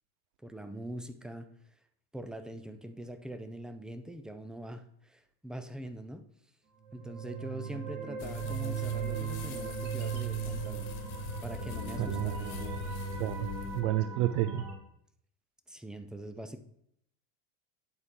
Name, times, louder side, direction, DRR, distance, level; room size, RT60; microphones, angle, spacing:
voice 1, 0.4-1.5 2.1-6.2 6.9-10.9 11.4-12.5 15.7-16.6, right 1 dB, ahead, 9 dB, 0.4 m, -43 dB
sound 1, 6.9-14.8, right 6 dB, 40° right, 2.1 m, -37 dB
sound 2, 8.2-13.8, left 9 dB, 55° left, 1.3 m, -43 dB
voice 2, 12.0-12.8 13.2-13.5 13.7-14.6, right 14 dB, 65° right, 12 dB, 0.5 m, -31 dB
10.5 x 4.1 x 3.6 m, 0.71 s
supercardioid pair, 100°, 45 cm